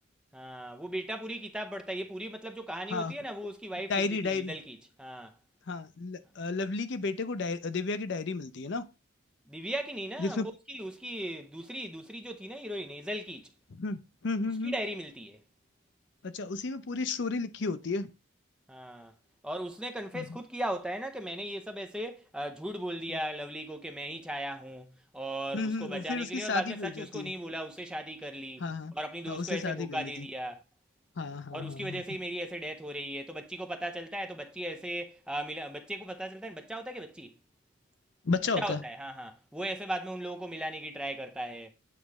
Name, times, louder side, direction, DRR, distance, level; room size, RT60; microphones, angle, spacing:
voice 1, 0.3-5.3 9.5-13.5 14.6-15.4 18.7-19.1 19.4-28.6 28.9-30.6 31.5-37.4 38.6-41.7, right 1 dB, 5° right, 0.6 m, -37 dB
voice 2, 3.9-4.5 5.7-8.8 10.2-10.5 13.8-14.7 16.2-18.1 20.1-20.2 25.5-27.3 28.6-28.9 29.3-30.2 31.2-32.0 38.3-38.8, left 3 dB, 55° left, 0.5 m, -33 dB
8.4 x 3.1 x 4.7 m
head